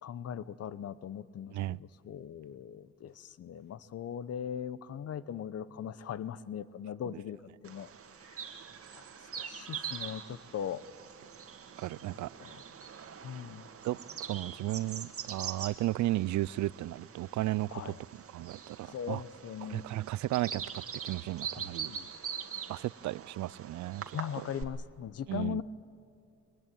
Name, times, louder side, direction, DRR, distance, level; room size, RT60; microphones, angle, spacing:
voice 1, 0.0-7.9 8.2-8.5 8.9-9.0 9.4-10.8 12.1-12.6 13.2-13.7 17.7-18.0 18.9-19.9 21.6-22.1 24.1-25.6, left 9 dB, 55° left, 0.9 m, -40 dB
Bird vocalization bird call bird song, 7.6-24.6, right 7 dB, 50° right, 1.9 m, -43 dB
voice 2, 11.8-12.5 13.8-19.2 19.7-20.6 21.0-21.9 22.7-24.4 25.3-25.6, right 16 dB, 70° right, 0.5 m, -34 dB
23.0 x 19.5 x 9.2 m
cardioid pair, 90°, 30 cm